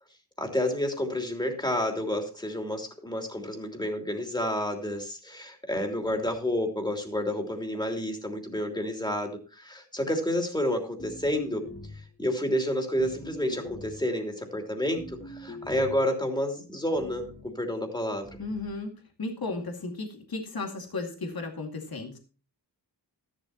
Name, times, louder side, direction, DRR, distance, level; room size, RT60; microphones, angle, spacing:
voice 1, 0.4-11.7 12.2-18.3, left 1 dB, 10° left, 3 dB, 3.0 m, -30 dB
sound 1, 11.0-12.1 13.0-14.1 15.0-16.1 16.9-17.5 18.2-18.8, left 1 dB, 35° left, 2.3 m, -43 dB
voice 2, 18.4-18.9 19.2-22.2, left 3 dB, 60° left, 3 dB, 2.3 m, -34 dB
13.5 x 11.5 x 2.9 m, 0.34 s
wide cardioid pair, 75°, 41 cm